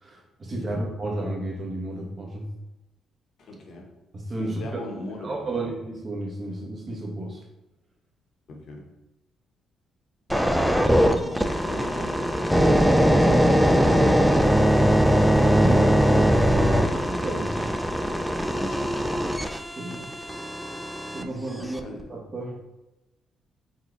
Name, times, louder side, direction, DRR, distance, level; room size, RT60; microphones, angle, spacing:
voice 1, 0.0-2.5 4.1-4.6 5.2-7.4 15.4-17.8 19.8-20.1 21.1-21.8 22.1-22.6, right 1 dB, 35° right, -1 dB, 1.1 m, -32 dB
voice 2, 3.4-3.9 4.4-5.7 8.5-8.8 10.4-13.8 18.5-19.3 21.6-22.1, left 1 dB, 65° left, 1 dB, 0.9 m, -38 dB
sound 1, 10.3-21.2 21.8-22.0, equal, ahead, 0.3 m, -21 dB
4.2 x 2.3 x 3.8 m, 1.0 s
cardioid pair, 90°, 0 cm